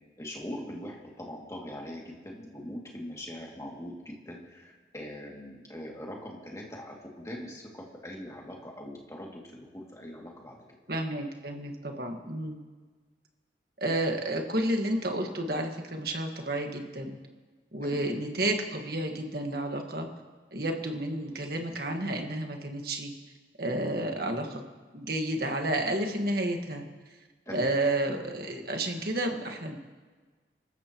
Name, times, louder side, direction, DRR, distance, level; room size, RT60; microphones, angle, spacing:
voice 1, 0.2-10.6 17.8-18.0 27.5-27.7, left 1 dB, 15° left, -2 dB, 2.4 m, -42 dB
voice 2, 10.9-12.6 13.8-17.2 17.7-20.1 20.5-23.1 23.6-24.6 24.9-26.8 27.5-29.8, right 1 dB, 55° right, 3 dB, 1.7 m, -31 dB
25.5 x 14.0 x 3.1 m, 1.4 s
head